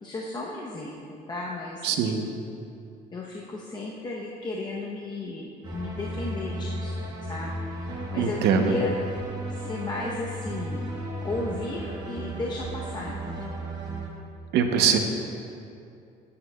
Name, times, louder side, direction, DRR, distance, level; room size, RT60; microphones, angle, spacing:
voice 1, 0.0-1.9 3.1-7.0 7.3-7.8 8.1-8.4 8.6-9.0 9.5-10.9 11.2-13.5, left 2 dB, 25° left, -3 dB, 0.7 m, -34 dB
voice 2, 1.8-2.3 8.2-8.7 14.5-15.0, right 7 dB, 80° right, 5 dB, 0.7 m, -22 dB
sound 1, 5.6-14.1, right 1 dB, 25° right, 1.2 m, -34 dB
11.0 x 8.4 x 2.2 m, 2.6 s
cardioid pair, 110°, 17 cm